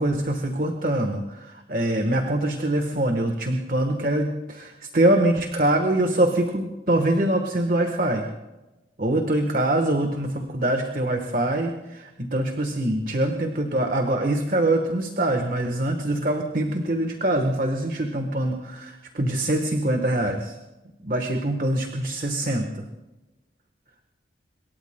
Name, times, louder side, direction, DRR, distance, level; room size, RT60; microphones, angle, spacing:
voice 1, 0.0-8.3 9.0-20.5 21.0-22.7, right 1 dB, 45° right, 5 dB, 1.2 m, -24 dB
26.5 x 22.5 x 2.2 m, 1.1 s
head